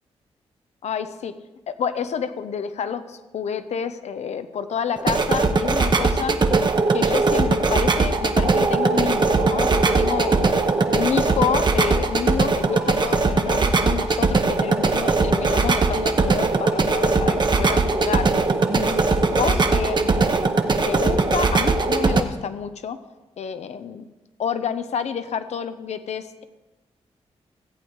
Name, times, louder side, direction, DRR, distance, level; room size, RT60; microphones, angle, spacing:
voice 1, 0.8-1.4 1.7-6.4 6.9-10.5 10.9-18.3 18.7-19.0 19.3-20.3 20.9-23.0 23.4-24.0 24.4-26.4, left 7 dB, 75° left, 11 dB, 0.8 m, -29 dB
sound 1, 5.0-22.2, right 3 dB, 40° right, 1.0 m, -20 dB
sound 2, 12.5-20.0, right 5 dB, 75° right, 1.1 m, -41 dB
14.5 x 8.2 x 4.7 m, 1.1 s
cardioid pair, 65°, 11 cm